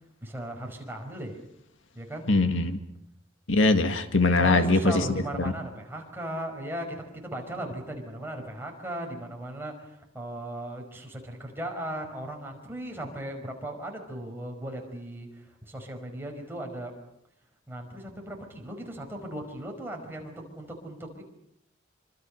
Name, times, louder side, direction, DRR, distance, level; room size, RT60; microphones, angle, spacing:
voice 1, 0.2-1.4 1.9-2.3 4.3-16.9 17.7-21.2, right 1 dB, 10° right, 1 dB, 5.1 m, -37 dB
voice 2, 2.3-2.8 3.5-5.0, left 2 dB, 80° left, 8 dB, 1.9 m, -22 dB
26.0 x 25.5 x 6.5 m, 0.77 s
head